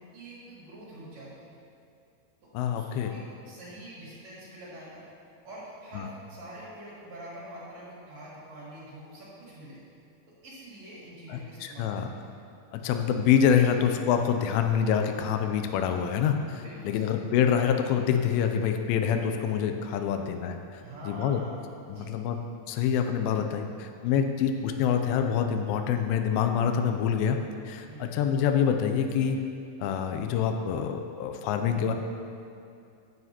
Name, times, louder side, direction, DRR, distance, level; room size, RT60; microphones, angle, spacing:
voice 1, 0.0-1.6 2.4-5.0 5.4-9.8 10.3-12.3 12.8-12.9 16.6-17.3 20.8-21.6 21.9-22.1 27.9-28.1, right 1 dB, 55° right, -8 dB, 2.4 m, -45 dB
voice 2, 2.5-3.1 6.0-6.1 11.3-12.1 12.7-20.6 21.1-21.4 21.9-22.4 22.7-27.4 27.7-29.4 29.8-31.9, left 8 dB, 85° left, 6 dB, 2.1 m, -26 dB
9.2 x 8.0 x 2.8 m, 2.6 s
omnidirectional pair, 4.7 m